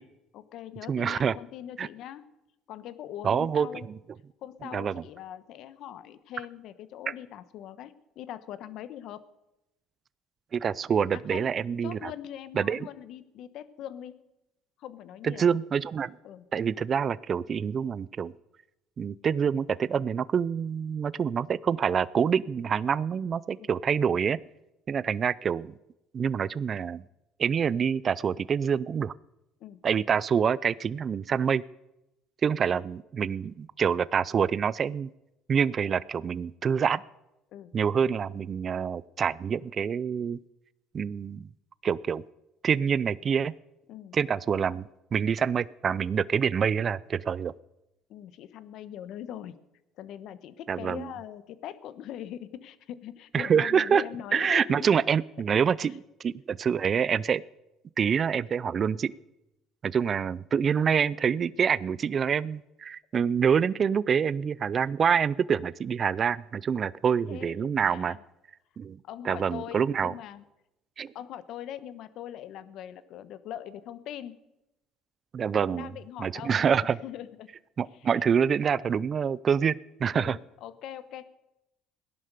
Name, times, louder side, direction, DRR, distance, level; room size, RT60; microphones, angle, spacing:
voice 1, 0.3-2.2 2.7-3.9 4.4-9.2 11.1-11.5 11.8-14.1 14.8-15.5 16.2-16.4 23.6-23.7 29.6-29.8 32.7-32.8 37.5-37.7 43.9-44.2 48.1-49.6 50.0-54.9 67.3-68.2 69.0-70.4 71.1-74.4 75.5-77.5 77.9-78.1 80.1-81.2, left 11 dB, 65° left, 14 dB, 1.1 m, -42 dB
voice 2, 0.9-1.4 1.8-1.9 3.2-3.7 4.7-5.0 10.5-12.1 12.6-12.8 15.2-16.1 16.5-18.3 19.0-24.4 24.9-25.7 26.1-27.0 27.4-29.1 29.8-31.6 32.4-35.1 35.5-37.0 37.7-40.4 40.9-41.5 41.8-42.2 42.6-43.5 44.1-44.8 45.1-47.5 50.7-51.1 53.3-54.0 54.3-57.4 58.0-59.1 59.8-68.2 68.8-69.0 69.2-70.1 71.0-71.1 75.3-75.9 76.2-77.0 77.8-80.4, right 7 dB, 40° right, 20 dB, 0.4 m, -26 dB
17.5 x 11.0 x 6.7 m, 0.91 s
supercardioid pair, 90°, 0 cm